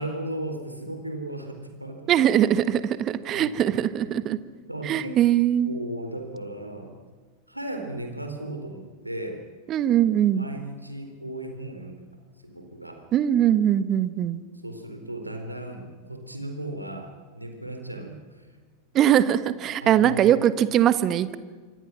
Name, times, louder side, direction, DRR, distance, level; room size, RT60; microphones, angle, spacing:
voice 1, 0.0-2.6 3.3-4.2 4.7-5.2 5.7-6.9 7.5-9.4 10.3-12.0 12.4-13.0 14.6-18.2 19.8-20.3, right 1 dB, 85° right, 4 dB, 4.1 m, -36 dB
voice 2, 2.1-4.4 4.8-5.7 9.7-10.5 13.1-14.4 18.9-21.4, right 11 dB, 30° right, 14 dB, 1.4 m, -21 dB
27.0 x 24.5 x 6.2 m, 1.5 s
figure-of-eight pair, 90°, 0 cm